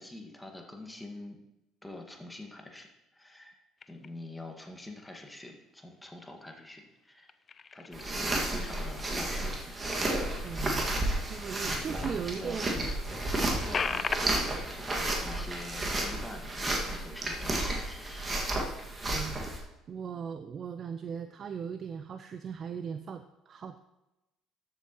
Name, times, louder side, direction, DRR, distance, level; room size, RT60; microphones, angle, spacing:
voice 1, 0.0-1.4 1.8-3.6 3.9-7.3 7.7-10.2 10.9-11.2 11.6-13.0 13.4-18.3, left 2 dB, 10° left, 3 dB, 1.7 m, -46 dB
sound 1, 3.8-4.4 4.9-5.5 6.0-6.7 7.0-12.2 12.6-12.7 12.9-16.9 17.2-17.4 17.9-18.9, left 5 dB, 40° left, 0.4 m, -41 dB
sound 2, 7.9-19.6, right 1 dB, 25° right, 1.9 m, -32 dB
voice 2, 10.4-10.9 11.3-12.8 19.0-23.8, right 7 dB, 45° right, 9 dB, 0.4 m, -38 dB
13.0 x 7.3 x 3.0 m, 0.96 s
hypercardioid pair, 60°, 0 cm